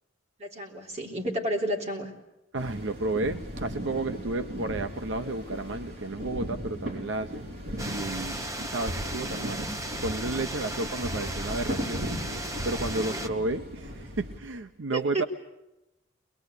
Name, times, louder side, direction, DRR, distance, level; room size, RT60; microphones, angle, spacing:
voice 1, 0.4-2.1 12.9-13.2 14.9-15.3, right 1 dB, 35° right, 0 dB, 3.4 m, -31 dB
sound 1, 2.5-14.4, equal, 55° right, 5.3 m, -36 dB
voice 2, 2.5-7.5 7.8-9.6 10.0-12.1 12.6-15.2, right 2 dB, 75° right, 8 dB, 0.8 m, -32 dB
sound 2, 7.8-13.3, right 1 dB, 15° right, 1.1 m, -36 dB
22.5 x 22.5 x 8.2 m, 0.92 s
head